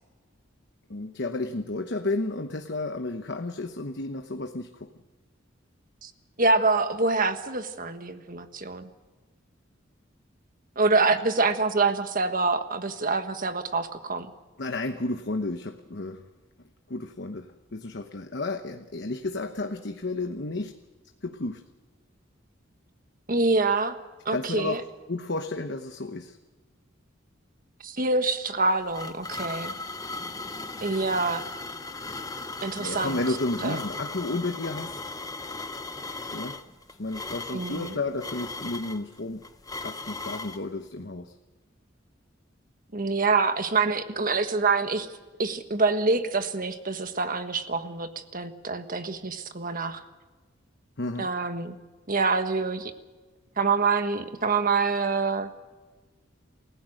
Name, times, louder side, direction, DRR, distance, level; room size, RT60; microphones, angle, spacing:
voice 1, 0.9-4.9 11.1-11.2 14.6-16.2 16.9-20.7 21.2-21.6 24.3-24.8 25.1-26.4 32.7-35.0 36.3-36.6 37.0-39.4 39.8-41.3 51.0-51.3, left 2 dB, 60° left, 6 dB, 1.1 m, -32 dB
voice 2, 6.4-8.9 10.8-14.3 23.3-24.0 24.2-24.8 27.8-29.7 30.8-31.4 32.6-33.2 33.6-33.8 37.5-38.0 42.9-45.1 45.4-50.0 51.2-51.7 52.1-52.9 53.6-55.5, right 3 dB, 45° right, 8 dB, 1.5 m, -26 dB
sound 1, 28.5-40.6, left 3 dB, 20° left, 1.0 m, -37 dB
28.5 x 16.0 x 6.5 m, 1.3 s
head